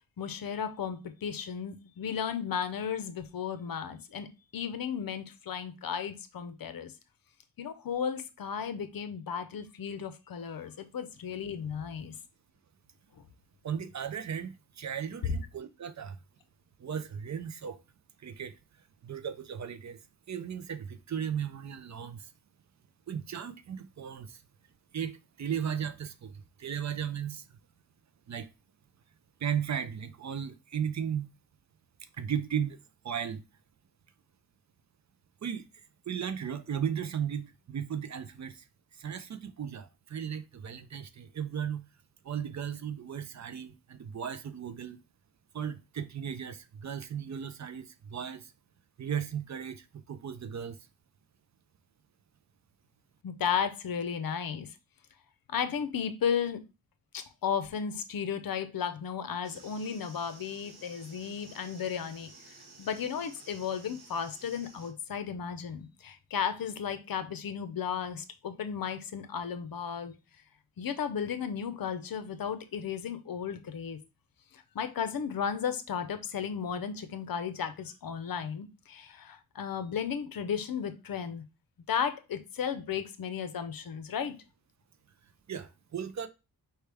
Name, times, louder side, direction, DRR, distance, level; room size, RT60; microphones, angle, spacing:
voice 1, 0.2-6.9 7.6-12.2 53.2-54.8 55.5-56.6 57.1-70.2 70.8-74.0 74.5-81.4 81.9-84.3, left 7 dB, 65° left, 0.7 m, -34 dB
voice 2, 13.6-16.2 16.8-17.8 18.2-18.5 19.0-20.0 20.3-22.3 23.1-24.4 24.9-27.6 28.3-28.5 29.4-31.3 32.1-32.8 33.0-33.4 35.4-38.7 38.9-41.8 42.2-45.0 45.5-48.5 49.0-50.8 85.5-86.3, right 8 dB, 50° right, 0.4 m, -36 dB
sound 1, 59.4-64.9, right 3 dB, 85° right, 1.5 m, -53 dB
4.6 x 3.3 x 3.4 m
wide cardioid pair, 175°, 37 cm